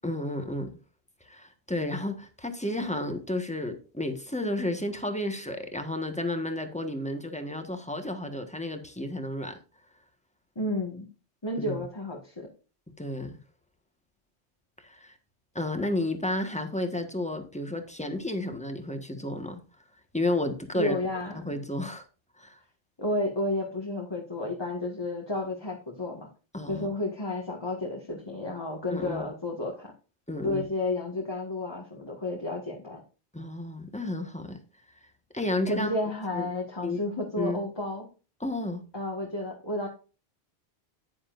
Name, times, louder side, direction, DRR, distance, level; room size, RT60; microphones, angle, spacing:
voice 1, 0.0-0.7 1.2-9.6 11.6-11.9 13.0-13.4 14.8-15.2 15.5-19.6 20.1-21.0 21.3-22.1 22.4-22.6 26.5-26.9 28.9-29.3 30.3-30.7 33.3-34.6 35.3-35.9 36.3-36.5 36.8-37.0 37.4-37.6 38.4-38.8, left 1 dB, 5° left, 1.3 m, -32 dB
voice 2, 10.5-11.1 11.4-12.5 20.7-21.5 23.0-26.3 26.7-29.9 30.4-33.0 35.7-38.1 38.9-39.9, left 2 dB, 25° left, 1.7 m, -31 dB
9.9 x 9.9 x 2.5 m
omnidirectional pair, 1.1 m